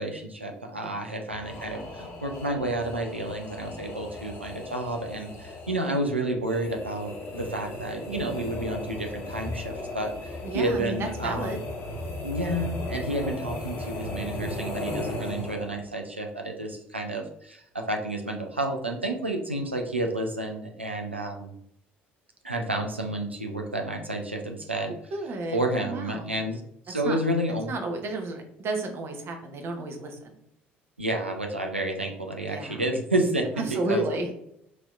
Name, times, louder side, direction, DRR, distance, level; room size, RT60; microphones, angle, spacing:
voice 1, 0.0-11.6 12.2-21.5 22.4-24.9 25.5-26.6 26.9-27.7 31.0-34.0, right 1 dB, 90° right, 3 dB, 0.5 m, -30 dB
sound 1, 1.3-15.9, left 1 dB, 50° left, 1.3 m, -36 dB
voice 2, 10.4-11.6 25.1-26.3 27.0-27.2 27.7-30.4 32.5-32.8 33.7-34.4, right 2 dB, 45° right, 4 dB, 0.9 m, -32 dB
6.0 x 3.0 x 2.4 m, 0.74 s
figure-of-eight pair, 55°, 6 cm